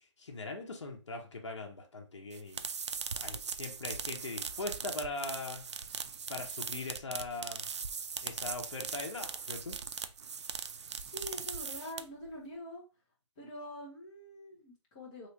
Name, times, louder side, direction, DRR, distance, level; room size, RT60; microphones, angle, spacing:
voice 1, 0.2-5.6 6.3-7.7 8.2-9.8, left 2 dB, 65° left, 2 dB, 0.9 m, -41 dB
sound 1, 2.3-12.3, right 6 dB, 70° right, 0.4 m, -40 dB
voice 2, 11.0-12.8 13.4-15.3, left 1 dB, 15° left, -4 dB, 0.8 m, -45 dB
3.2 x 2.9 x 2.8 m, 0.33 s
hypercardioid pair, 165°, 16 cm